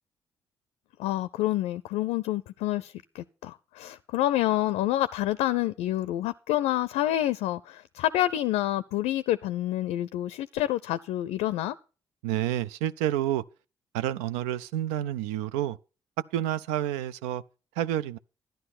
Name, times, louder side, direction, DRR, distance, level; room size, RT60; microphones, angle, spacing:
voice 1, 1.0-11.8, left 14 dB, 75° left, 0.5 m, -28 dB
voice 2, 12.2-13.4 13.9-15.8 16.3-17.4 17.8-18.2, right 12 dB, 80° right, 0.5 m, -29 dB
12.5 x 10.5 x 4.2 m
hypercardioid pair, 45°, 11 cm